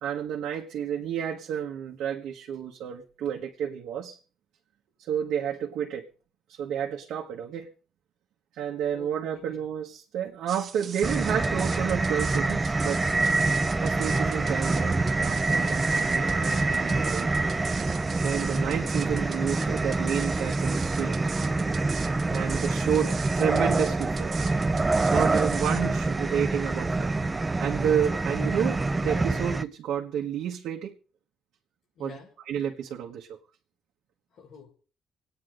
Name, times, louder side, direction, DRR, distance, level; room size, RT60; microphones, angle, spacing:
voice 1, 0.0-4.2 5.0-6.1 6.5-7.7 8.6-13.0 13.8-17.3 18.1-21.3 22.3-24.3 25.1-27.1 27.6-30.9 32.0-32.1 32.5-33.4, right 9 dB, 80° right, 1.5 m, -30 dB
voice 2, 8.9-9.6 16.7-17.2 32.0-32.3 34.3-34.7, left 5 dB, 75° left, 5.2 m, -49 dB
sound 1, 10.5-25.8, right 7 dB, 55° right, 1.4 m, -41 dB
sound 2, 11.0-29.6, right 3 dB, 20° right, 0.7 m, -26 dB
26.0 x 9.6 x 3.9 m
cardioid pair, 90°, 0 cm